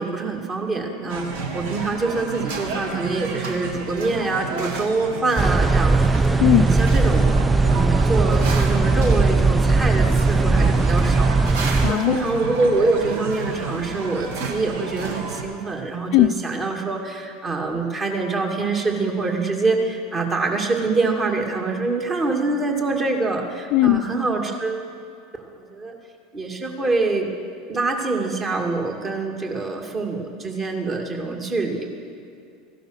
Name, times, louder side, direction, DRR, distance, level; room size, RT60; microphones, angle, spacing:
voice 1, 0.0-24.9 25.6-25.9 26.3-27.3 27.7-31.9, right 3 dB, 30° right, 2 dB, 2.3 m, -25 dB
sound 1, 1.1-15.4, right 4 dB, 65° right, 1.6 m, -31 dB
sound 2, 5.4-11.9, right 3 dB, 15° right, 0.3 m, -18 dB
voice 2, 11.8-12.2 16.1-16.3 23.7-24.0, left 14 dB, 55° left, 14 dB, 0.5 m, -17 dB
16.0 x 12.0 x 6.5 m, 2.4 s
figure-of-eight pair, 80°, 0 cm